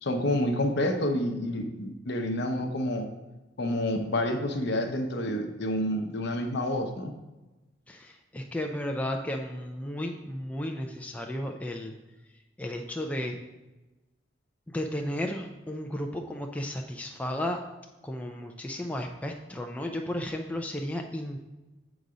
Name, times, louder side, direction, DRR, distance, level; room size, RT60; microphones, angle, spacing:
voice 1, 0.0-3.1 3.6-7.1, left 1 dB, 60° left, 4 dB, 0.8 m, -28 dB
voice 2, 7.9-11.9 12.6-13.4 14.7-17.6 18.0-21.5, left 1 dB, 5° left, 2 dB, 0.4 m, -34 dB
7.9 x 4.0 x 4.9 m, 1.1 s
head